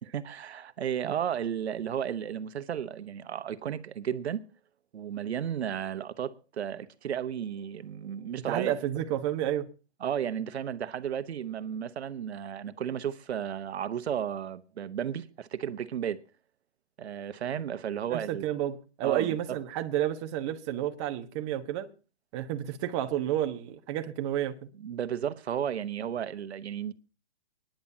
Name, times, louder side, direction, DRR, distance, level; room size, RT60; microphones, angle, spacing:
voice 1, 0.1-4.4 4.9-8.7 10.0-16.2 17.0-18.4 19.0-19.6 24.8-26.9, right 9 dB, 75° right, 1.1 m, -33 dB
voice 2, 8.5-9.7 18.1-21.9 22.3-24.7, right 12 dB, 25° right, 1.1 m, -31 dB
24.5 x 10.5 x 2.8 m
hypercardioid pair, 150°, 33 cm